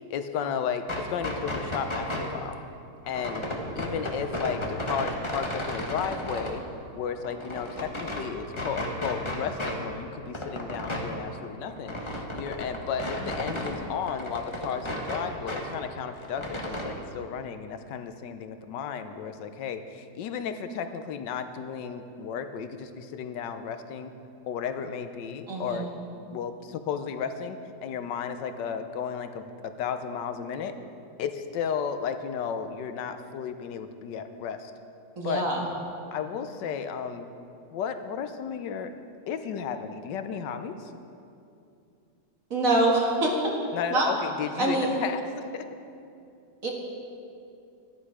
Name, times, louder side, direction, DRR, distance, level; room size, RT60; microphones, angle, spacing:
voice 1, 0.0-2.6 3.1-3.5 3.8-6.6 6.9-24.1 24.5-25.9 26.3-30.7 31.2-34.7 35.2-35.4 36.1-37.3 37.7-38.9 39.3-40.9 43.7-45.7, left 7 dB, 85° left, 9 dB, 1.4 m, -33 dB
sound 1, 0.8-2.3 3.1-6.5 7.0-8.2 8.5-9.8 10.0-13.8 14.0-15.6 15.9-16.8, left 1 dB, 20° left, 1.1 m, -33 dB
voice 2, 25.5-25.9 35.2-35.6 42.5-43.3 43.9-44.1 44.6-45.0 46.6-46.7, right 2 dB, 50° right, -1 dB, 2.0 m, -24 dB
13.0 x 10.5 x 4.9 m, 2.6 s
omnidirectional pair, 1.9 m